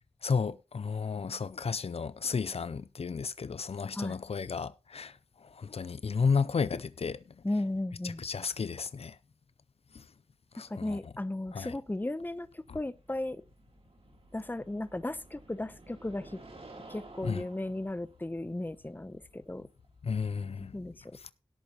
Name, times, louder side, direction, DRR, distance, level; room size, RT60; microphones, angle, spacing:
voice 1, 0.2-7.2 8.0-9.2 9.9-10.0 10.5-11.0 11.5-11.7 12.7-12.8 17.2-17.4 20.0-20.8, left 5 dB, 75° left, 0.5 m, -33 dB
voice 2, 7.4-8.2 10.6-13.4 14.3-16.4 16.9-19.7 20.7-21.2, left 1 dB, 20° left, 0.8 m, -35 dB
sound 1, 11.9-20.7, right 2 dB, 70° right, 3.2 m, -54 dB
17.5 x 8.4 x 3.0 m
wide cardioid pair, 65°, 10 cm